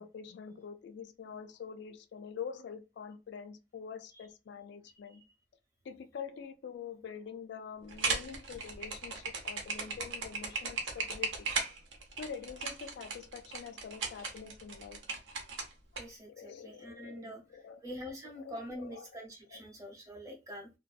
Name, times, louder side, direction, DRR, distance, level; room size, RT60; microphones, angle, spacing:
voice 1, 0.0-5.2 5.8-11.5 12.2-15.0 16.3-17.3 17.6-17.8 18.4-19.1 19.5-19.6, left 6 dB, 60° left, 0.3 m, -45 dB
voice 2, 4.9-5.2 16.0-17.4 17.8-20.7, equal, 15° right, 0.7 m, -45 dB
sound 1, 7.9-16.0, right 4 dB, 75° right, 0.7 m, -36 dB
2.6 x 2.2 x 2.4 m
head